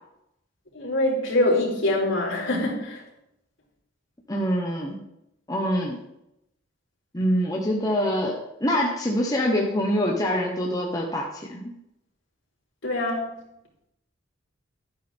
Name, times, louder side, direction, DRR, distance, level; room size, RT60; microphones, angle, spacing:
voice 1, 0.7-3.0 12.8-13.3, left 1 dB, 70° left, -3 dB, 4.0 m, -24 dB
voice 2, 4.3-5.0 5.5-6.0 7.1-11.7, equal, 20° left, -1 dB, 1.2 m, -25 dB
12.0 x 9.7 x 3.6 m, 0.84 s
head